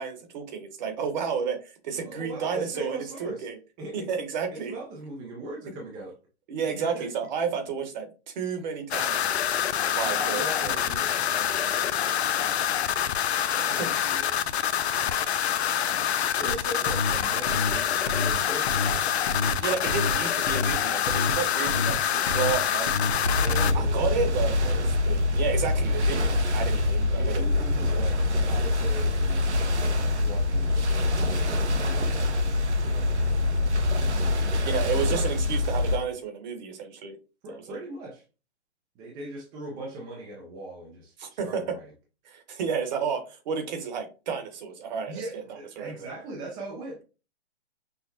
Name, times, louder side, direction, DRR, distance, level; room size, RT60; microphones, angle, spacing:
voice 1, 0.0-3.6 3.9-4.8 6.5-9.4 9.9-10.8 13.6-13.9 19.6-22.9 23.6-24.8 25.1-27.5 27.9-28.1 34.6-37.2 37.5-37.8 41.2-41.8 42.3-45.4 45.8-46.1, right 6 dB, 40° right, 1.0 m, -31 dB
voice 2, 2.0-3.5 3.8-4.1 4.5-6.1 6.6-7.1 9.8-12.8 13.5-14.6 15.1-15.4 16.4-19.1 23.3-24.2 24.6-24.9 27.1-33.1 33.5-33.9 34.3-34.5 37.4-38.2 39.0-41.8 45.1-47.0, right 1 dB, 15° right, 0.4 m, -40 dB
sound 1, 8.9-23.7, left 9 dB, 70° left, 0.5 m, -26 dB
sound 2, 16.5-16.6 16.9-17.1 17.5-17.7 18.1-18.3 18.7-18.9 19.3-19.5 19.9-20.1 20.5-20.7 21.1-21.3 21.7-21.9 22.3-22.5 22.9-23.1 23.5-23.7, left 3 dB, 35° left, 0.8 m, -28 dB
sound 3, 23.2-36.0, left 2 dB, 85° right, 0.9 m, -25 dB
5.7 x 2.1 x 2.7 m
hypercardioid pair, 135°, 34 cm